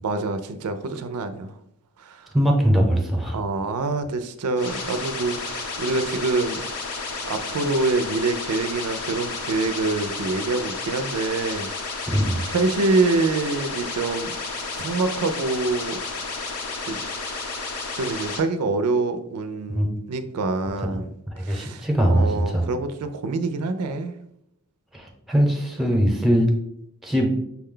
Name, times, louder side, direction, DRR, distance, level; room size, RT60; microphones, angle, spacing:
voice 1, 0.0-1.5 2.0-2.3 3.3-6.6 7.3-12.1 12.5-14.3 14.8-16.0 16.9-17.0 17.9-21.1 21.4-24.1, right 3 dB, 85° right, 10 dB, 0.4 m, -26 dB
voice 2, 2.3-3.4 12.1-12.4 19.7-19.9 21.3-22.7 24.9-26.5 27.0-27.3, equal, ahead, 0 dB, 0.7 m, -21 dB
sound 1, 4.6-18.4, left 4 dB, 70° left, 0.7 m, -32 dB
5.8 x 2.2 x 3.7 m, 0.78 s
head